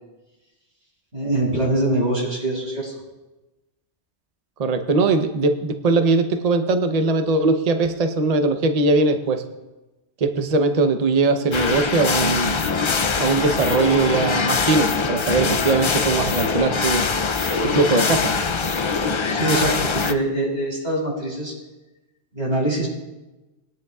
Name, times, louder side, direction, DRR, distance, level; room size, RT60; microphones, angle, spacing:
voice 1, 1.1-2.9 19.3-21.5 22.3-22.9, right 1 dB, 70° right, -3 dB, 5.1 m, -23 dB
voice 2, 4.6-9.4 10.2-12.6 13.2-17.1 17.6-18.4, right 3 dB, 40° right, 6 dB, 0.8 m, -20 dB
sound 1, 11.5-20.1, left 4 dB, 50° left, 0.3 m, -23 dB
21.5 x 10.5 x 2.4 m, 1.1 s
omnidirectional pair, 1.2 m